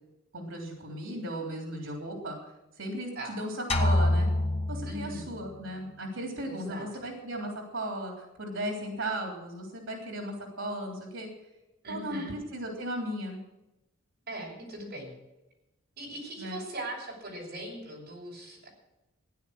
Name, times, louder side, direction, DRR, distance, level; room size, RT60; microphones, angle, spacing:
voice 1, 0.3-2.4 2.8-4.3 4.7-11.3 11.9-13.4 16.4-16.6, right 1 dB, 75° right, 1 dB, 3.4 m, -36 dB
sound 1, 3.7-5.5, left 1 dB, 30° left, 1.2 m, -26 dB
voice 2, 4.8-5.3 6.4-6.9 11.8-12.3 14.3-15.1 16.0-18.7, right 1 dB, 45° right, -2 dB, 6.2 m, -40 dB
15.5 x 10.5 x 6.5 m, 0.96 s
head